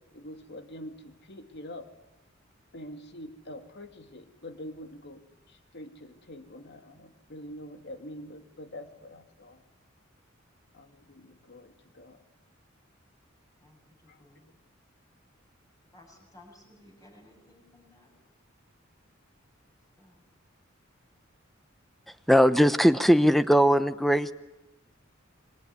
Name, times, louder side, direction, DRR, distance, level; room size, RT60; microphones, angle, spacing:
voice 1, 0.1-1.9 2.7-5.2 5.5-9.6 10.7-12.2 14.1-14.2, left 1 dB, 55° left, 7 dB, 2.4 m, -45 dB
voice 2, 14.2-14.5 15.9-18.1 20.0-20.2, left 1 dB, 20° left, 1 dB, 8.0 m, -56 dB
voice 3, 22.3-24.3, equal, ahead, 12 dB, 0.9 m, -20 dB
27.5 x 22.5 x 9.6 m, 1.0 s
head